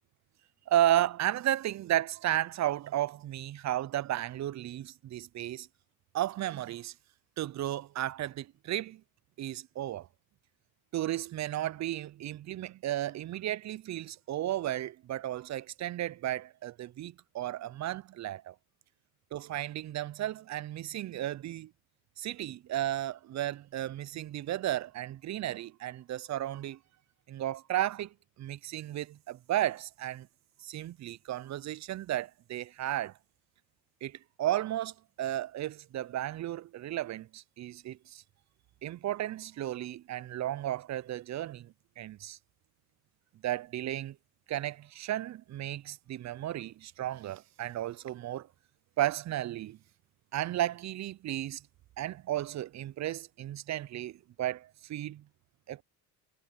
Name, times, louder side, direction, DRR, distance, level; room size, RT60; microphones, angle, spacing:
voice 1, 0.7-5.7 6.1-6.9 7.4-9.0 9.4-10.1 10.9-18.5 19.3-21.7 22.2-26.8 27.3-30.3 30.6-33.2 34.0-38.2 38.8-42.4 43.4-44.2 44.5-48.5 49.0-49.8 50.3-51.6 52.0-55.2 55.7-55.8, right 13 dB, 35° right, 0.5 m, -34 dB
supercardioid pair, 85°, 48 cm